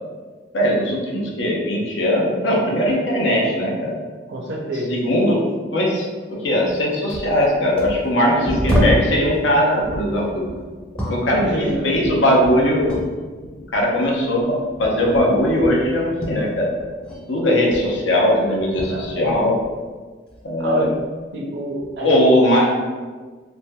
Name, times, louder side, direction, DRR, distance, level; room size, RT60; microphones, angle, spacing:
voice 1, 0.5-3.9 4.9-5.4 5.7-10.5 11.1-13.0 13.7-16.7 17.3-19.6 20.4-20.9 22.0-22.6, equal, 90° left, -2 dB, 0.6 m, -19 dB
voice 2, 4.3-5.0 8.3-8.5 11.3-12.0 18.8-19.4 20.6-21.0 21.3-22.2, right 1 dB, 65° right, 1 dB, 0.5 m, -27 dB
sound 1, 6.7-6.8 7.1-9.2 9.8-13.1 13.4-17.2 17.5-19.8 20.3-21.0 21.8-22.0, equal, 5° left, 0.5 m, -28 dB
3.3 x 2.6 x 2.2 m, 1.4 s
head